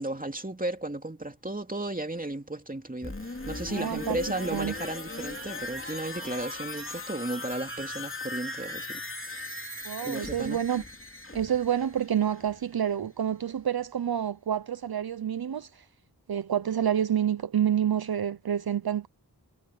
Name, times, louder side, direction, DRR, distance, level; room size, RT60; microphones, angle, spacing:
voice 1, 0.0-9.6 10.0-10.6, right 2 dB, 20° right, 2.6 m, -34 dB
sound 1, 3.0-12.7 13.1-13.2, left 2 dB, 30° left, 3.1 m, -38 dB
voice 2, 3.7-4.2 4.5-4.7 9.8-10.8 11.3-15.9 16.3-19.1, right 9 dB, 65° right, 0.7 m, -28 dB
wide cardioid pair, 40°, 40 cm